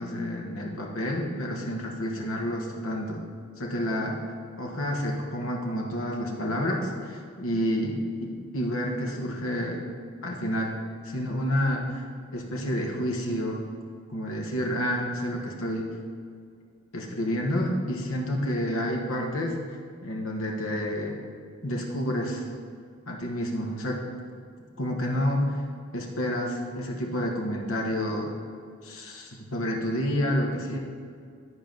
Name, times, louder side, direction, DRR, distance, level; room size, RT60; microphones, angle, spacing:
voice 1, 0.0-3.2 3.6-4.2 4.6-9.8 10.2-10.8 11.0-12.0 12.3-13.6 14.1-15.9 16.9-19.6 20.0-21.2 21.6-22.5 23.1-24.0 24.8-25.6 25.9-28.3 28.8-30.8, equal, 75° left, 0 dB, 1.3 m, -29 dB
11.0 x 4.6 x 5.3 m, 2.2 s
head